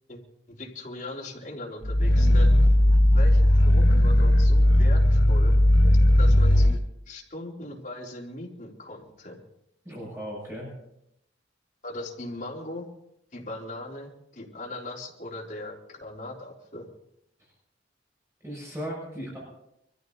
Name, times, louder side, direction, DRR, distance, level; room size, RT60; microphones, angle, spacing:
voice 1, 0.5-2.6 3.1-5.6 6.2-6.8 7.1-9.4 11.8-12.9 13.3-16.9, left 1 dB, 45° left, -2 dB, 3.8 m, -39 dB
Growling, 1.8-6.8, left 1 dB, 85° left, 1.5 m, -18 dB
voice 2, 9.8-10.7 18.4-19.4, equal, 15° right, -5 dB, 6.7 m, -36 dB
24.5 x 14.5 x 4.0 m, 0.78 s
head